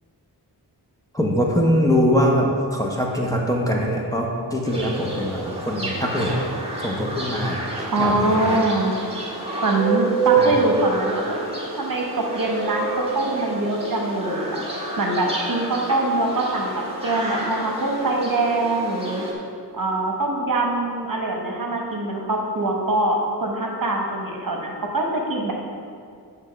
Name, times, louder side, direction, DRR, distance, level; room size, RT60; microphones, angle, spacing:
voice 1, 1.1-6.4 6.8-7.6 8.0-8.6 10.4-10.6, equal, 10° left, -2 dB, 0.9 m, -22 dB
sound 1, 4.7-19.3, right 3 dB, 15° right, 1.5 m, -28 dB
voice 2, 7.9-8.9 9.6-11.4 11.8-19.2 19.7-25.5, right 2 dB, 55° right, 0 dB, 1.1 m, -23 dB
8.8 x 3.7 x 5.7 m, 2.2 s
wide cardioid pair, 85°, 41 cm